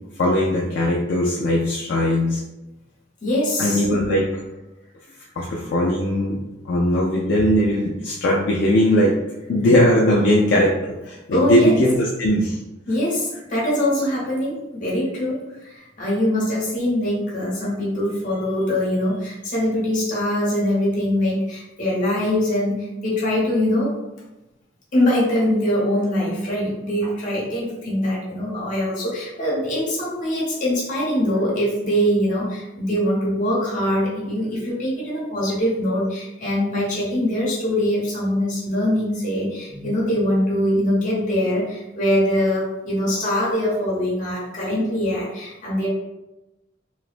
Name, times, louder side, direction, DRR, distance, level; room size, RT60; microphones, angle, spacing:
voice 1, 0.2-2.4 3.6-4.3 5.4-6.4 6.6-9.2 9.5-12.6, left 1 dB, 70° left, -3 dB, 0.4 m, -19 dB
voice 2, 3.2-3.8 11.3-11.7 12.9-23.9 24.9-45.9, left 1 dB, 45° left, -7 dB, 1.0 m, -23 dB
3.0 x 2.0 x 2.4 m, 0.99 s
head